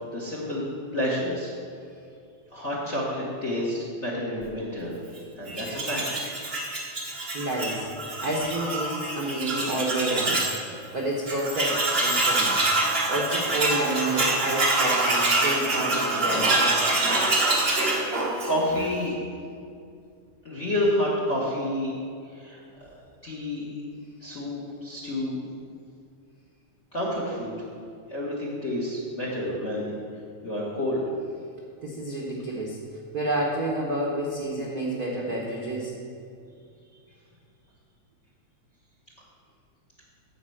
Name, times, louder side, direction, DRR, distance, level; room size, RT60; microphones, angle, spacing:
voice 1, 0.1-0.6 0.9-1.5 2.5-4.9 5.4-6.0 18.4-19.2 20.4-21.9 22.3-22.9 23.2-23.7 24.2-25.4 26.9-27.5 28.1-29.9 30.4-31.0, left 1 dB, 60° left, -4 dB, 0.7 m, -29 dB
Tools, 5.5-10.6 10.9-11.0 11.3-18.9, right 2 dB, 45° right, 0.8 m, -25 dB
voice 2, 7.3-7.9 8.2-10.5 10.9-12.6 13.1-16.7 31.8-32.8 33.1-35.9, right 1 dB, 85° right, -3 dB, 0.8 m, -29 dB
10.0 x 4.3 x 7.7 m, 2.4 s
omnidirectional pair, 3.3 m